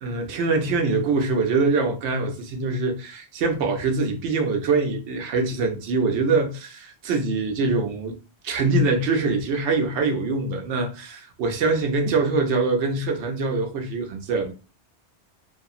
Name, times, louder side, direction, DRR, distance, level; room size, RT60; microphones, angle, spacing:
voice 1, 0.0-8.2 8.4-14.5, right 3 dB, 90° right, 0.9 m, -24 dB
2.7 x 2.6 x 2.4 m
omnidirectional pair, 1.1 m